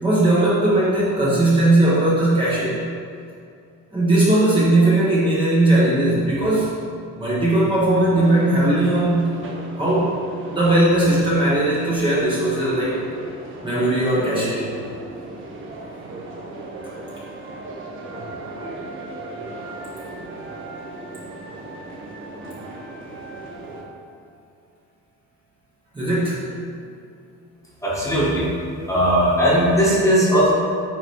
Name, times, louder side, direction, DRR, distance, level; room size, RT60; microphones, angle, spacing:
voice 1, 0.0-2.8 3.9-6.7 7.1-9.4 9.8-13.0 13.6-14.7 25.9-26.4, right 1 dB, 15° right, -9 dB, 1.3 m, -18 dB
sound 1, 8.2-23.8, right 2 dB, 35° right, 1.1 m, -37 dB
voice 2, 27.8-28.5 28.8-30.5, equal, 10° left, -7 dB, 1.5 m, -18 dB
9.9 x 4.0 x 4.6 m, 2.4 s
cardioid pair, 175°, 35 cm